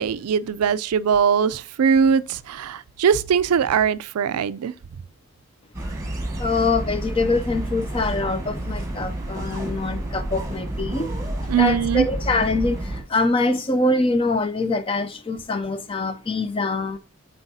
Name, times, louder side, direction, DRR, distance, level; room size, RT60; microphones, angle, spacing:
voice 1, 0.0-4.7 11.5-12.1, right 7 dB, 85° right, 0.4 m, -21 dB
sound 1, 5.7-13.0, right 1 dB, 15° right, 1.3 m, -30 dB
voice 2, 6.4-11.1 11.4-17.0, left 2 dB, 25° left, 0.4 m, -24 dB
7.9 x 4.5 x 2.7 m
head